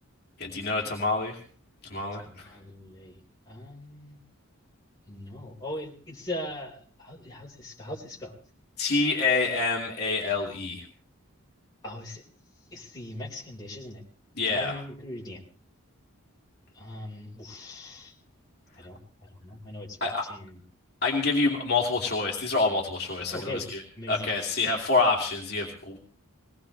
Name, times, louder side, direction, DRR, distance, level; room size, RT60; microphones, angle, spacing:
voice 1, 0.4-1.4 1.9-2.5 8.8-10.8 14.4-14.8 20.0-20.3 21.0-23.8 24.1-26.0, left 3 dB, 45° left, -1 dB, 2.7 m, -27 dB
voice 2, 2.2-3.1 3.5-4.2 5.1-8.3 11.8-12.2 12.7-14.0 14.5-15.5 16.7-18.1 18.8-19.0 19.4-20.6 23.3-23.6 24.0-24.3 24.6-24.8, left 1 dB, 15° left, -3 dB, 4.5 m, -40 dB
21.5 x 19.0 x 3.3 m, 0.43 s
head